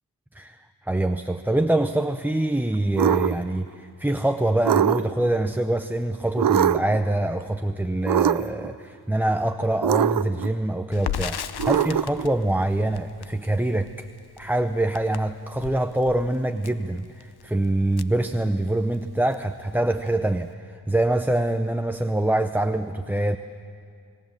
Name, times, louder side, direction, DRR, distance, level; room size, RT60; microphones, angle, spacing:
voice 1, 0.3-14.1 14.4-23.4, right 1 dB, 5° right, 7 dB, 0.6 m, -25 dB
sound 1, 3.0-3.4 4.6-5.3 6.4-7.0 8.1-8.7 9.8-10.5 11.6-12.3, right 9 dB, 55° right, 0.6 m, -22 dB
Crackle, 10.9-19.0 19.3-19.4 19.8-20.5, left 9 dB, 70° left, 0.8 m, -37 dB
29.5 x 18.0 x 7.4 m, 2.3 s
cardioid pair, 70°, 40 cm